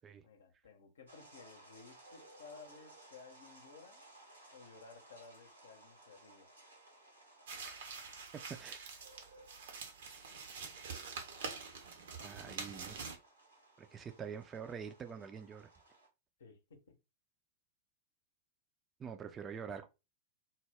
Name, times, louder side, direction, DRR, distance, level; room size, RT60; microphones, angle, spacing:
voice 1, 0.1-4.0 4.5-6.5 16.4-17.0, left 5 dB, 70° left, 0.7 m, -56 dB
sound 1, 1.1-16.1, right 2 dB, 90° right, 0.9 m, -61 dB
sound 2, 7.5-13.2, right 5 dB, 65° right, 0.6 m, -46 dB
voice 2, 12.2-13.0 13.8-15.7 19.0-19.9, right 7 dB, 25° right, 0.4 m, -45 dB
2.2 x 2.0 x 3.3 m
figure-of-eight pair, 95°, 0 cm